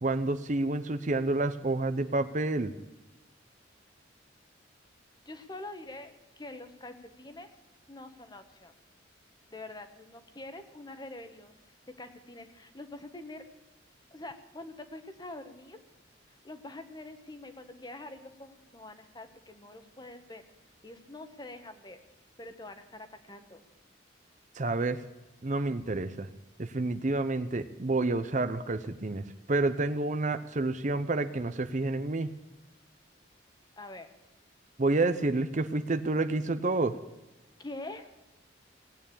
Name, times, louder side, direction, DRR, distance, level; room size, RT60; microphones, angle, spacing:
voice 1, 0.0-2.7 24.6-25.0 25.4-26.3 26.6-32.3 34.8-37.0, right 2 dB, 40° right, 12 dB, 0.7 m, -29 dB
voice 2, 5.2-7.5 7.9-8.7 9.5-11.5 12.0-13.4 14.1-15.8 16.4-20.4 20.8-22.0 22.4-23.6 33.8-34.1 37.6-38.1, left 2 dB, 20° left, 8 dB, 1.3 m, -45 dB
18.5 x 9.1 x 8.6 m, 1.1 s
head